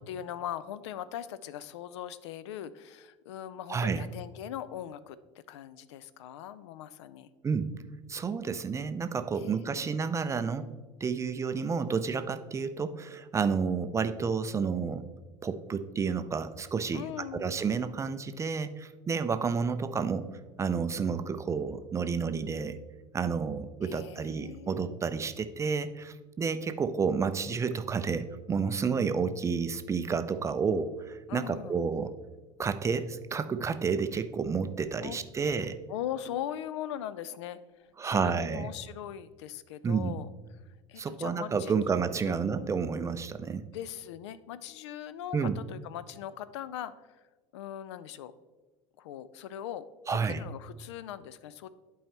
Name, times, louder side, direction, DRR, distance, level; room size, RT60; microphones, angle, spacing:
voice 1, 0.1-5.2 5.5-7.3 9.3-9.9 16.9-17.5 23.8-25.0 31.3-31.8 35.0-35.2 35.9-37.6 38.0-40.3 40.9-41.8 42.2-42.7 43.7-47.2 47.5-48.3 49.0-51.7, left 11 dB, 60° left, 16 dB, 0.4 m, -40 dB
voice 2, 3.7-4.0 7.4-7.7 8.1-10.7 11.0-15.1 15.4-17.0 17.3-20.3 20.6-22.8 23.1-32.1 32.6-35.8 38.0-38.7 39.8-40.1 41.0-43.6 45.3-45.6 50.1-50.4, right 5 dB, 20° right, 11 dB, 0.4 m, -30 dB
11.0 x 4.7 x 2.9 m, 1.3 s
figure-of-eight pair, 70°, 16 cm